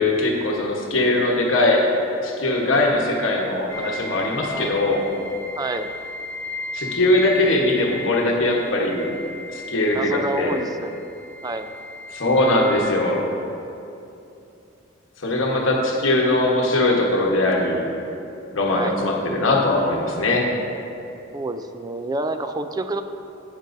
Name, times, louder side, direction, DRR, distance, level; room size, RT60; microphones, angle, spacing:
voice 1, 0.0-1.9 2.2-5.0 6.7-9.1 9.5-10.6 12.1-13.2 15.2-17.9 18.5-20.5, left 2 dB, 70° left, -1 dB, 1.2 m, -21 dB
sound 1, 3.7-12.9, left 2 dB, 15° left, 0.9 m, -35 dB
voice 2, 5.6-5.9 9.9-11.1 11.4-11.7 18.7-19.0 21.3-23.0, right 2 dB, 20° right, 8 dB, 0.4 m, -28 dB
12.5 x 8.9 x 2.6 m, 2.7 s
head